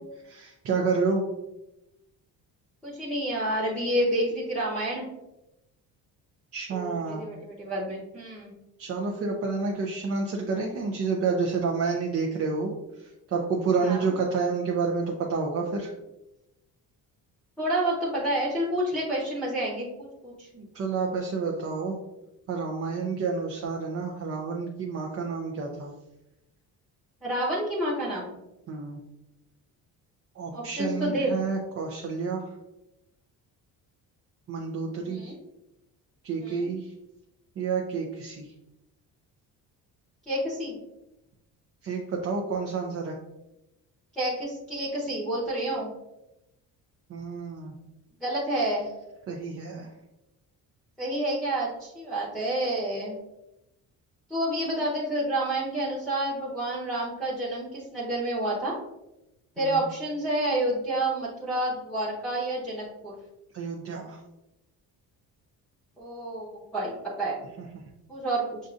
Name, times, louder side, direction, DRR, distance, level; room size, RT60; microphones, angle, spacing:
voice 1, 0.2-1.2 6.5-7.2 8.8-15.9 20.5-22.0 22.5-25.9 28.7-29.0 30.4-32.5 34.5-35.3 36.2-36.9 37.6-38.5 41.8-43.2 47.1-47.8 49.3-49.9 59.6-59.9 63.5-64.2 67.7-67.8, right 4 dB, 40° right, 0 dB, 0.5 m, -29 dB
voice 2, 2.8-5.1 6.7-8.5 13.8-14.1 17.6-20.5 27.2-28.3 30.5-31.3 35.0-35.3 36.4-36.7 40.3-40.8 44.2-45.9 48.2-48.9 51.0-53.2 54.3-58.8 59.6-63.1 66.0-67.4 68.1-68.6, right 1 dB, ahead, -6 dB, 0.9 m, -29 dB
6.3 x 2.6 x 2.4 m, 0.93 s
cardioid pair, 135°, 36 cm